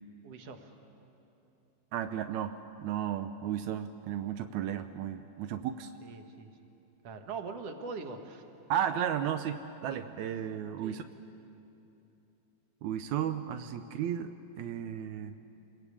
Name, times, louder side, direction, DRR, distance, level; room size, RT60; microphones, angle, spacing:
voice 1, 0.2-0.7 6.0-6.5 7.0-8.4 10.8-11.0, right 4 dB, 55° right, 6 dB, 2.2 m, -42 dB
voice 2, 1.9-5.9 8.7-11.0 12.8-15.4, right 9 dB, 85° right, 9 dB, 1.7 m, -34 dB
28.5 x 21.5 x 8.6 m, 2.8 s
omnidirectional pair, 4.2 m